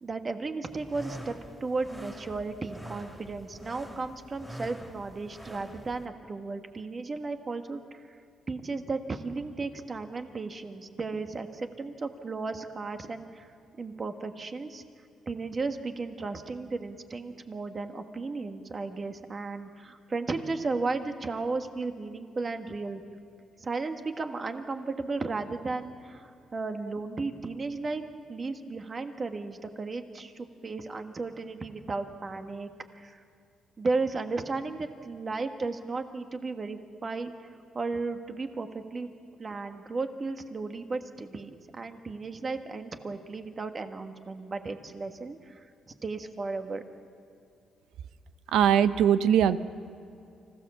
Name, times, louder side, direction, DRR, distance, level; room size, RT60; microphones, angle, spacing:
voice 1, 0.0-8.2 8.5-14.8 15.2-23.0 23.6-28.0 28.3-33.2 33.8-37.3 37.7-39.1 39.4-46.8, right 3 dB, 35° right, 7 dB, 1.5 m, -34 dB
sound 1, 0.7-6.0, equal, ahead, 3.5 m, -45 dB
voice 2, 48.5-49.6, right 9 dB, 85° right, 13 dB, 0.7 m, -21 dB
25.5 x 16.0 x 7.2 m, 2.5 s
cardioid pair, 90°, 0 cm